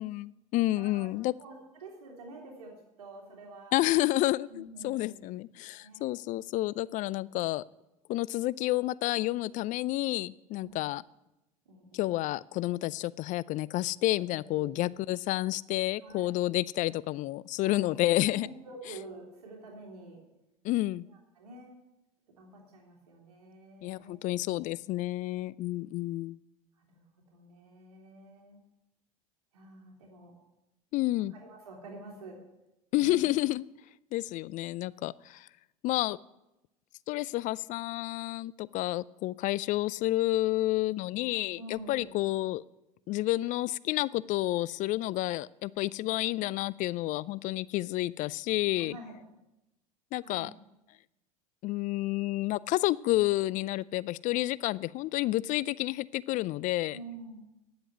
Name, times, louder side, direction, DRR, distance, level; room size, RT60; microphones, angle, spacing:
voice 1, 0.0-1.3 3.7-7.6 8.1-11.0 11.9-18.5 20.6-21.1 23.8-26.4 30.9-31.3 32.9-33.6 34.1-35.5 35.8-36.2 37.1-42.6 43.1-49.0 50.1-50.5 51.6-57.0, left 17 dB, 40° left, 21 dB, 0.4 m, -30 dB
voice 2, 0.8-1.1 1.4-2.7 3.0-3.8 4.5-5.2 5.7-6.1 10.6-10.8 11.7-12.1 14.3-15.0 16.0-16.4 17.6-18.0 18.3-20.2 21.1-21.7 22.4-24.3 26.8-27.0 27.3-28.6 29.5-30.3 31.3-32.4 32.9-33.4 41.6-42.1 48.8-49.2 50.2-50.5 56.9-57.5, right 2 dB, 80° right, -1 dB, 3.4 m, -48 dB
9.9 x 7.8 x 9.5 m, 0.93 s
hypercardioid pair, 80°, 19 cm